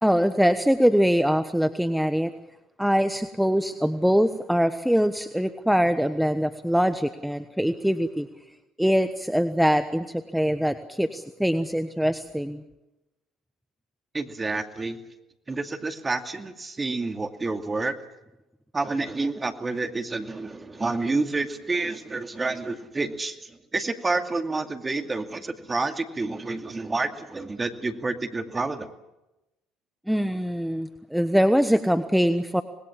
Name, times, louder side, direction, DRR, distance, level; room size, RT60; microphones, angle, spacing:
voice 1, 0.0-2.3 2.8-8.3 8.8-12.6 30.1-32.6, equal, ahead, 10 dB, 1.2 m, -23 dB
voice 2, 14.1-15.0 15.5-18.0 18.7-23.4 23.7-28.9, right 3 dB, 25° right, 7 dB, 2.4 m, -29 dB
26.5 x 20.0 x 7.4 m, 0.96 s
hypercardioid pair, 60°, 0 cm